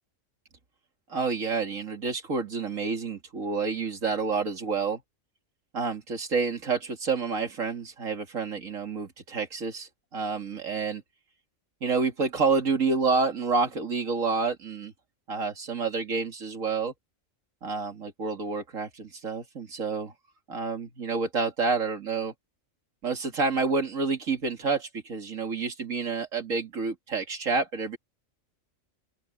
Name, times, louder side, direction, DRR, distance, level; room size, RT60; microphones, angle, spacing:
voice 1, 1.1-5.0 5.7-11.0 11.8-14.9 15.3-16.9 17.6-20.1 20.5-22.3 23.0-28.0, right 4 dB, 85° right, 2.6 m, -29 dB
open air
omnidirectional pair, 1.4 m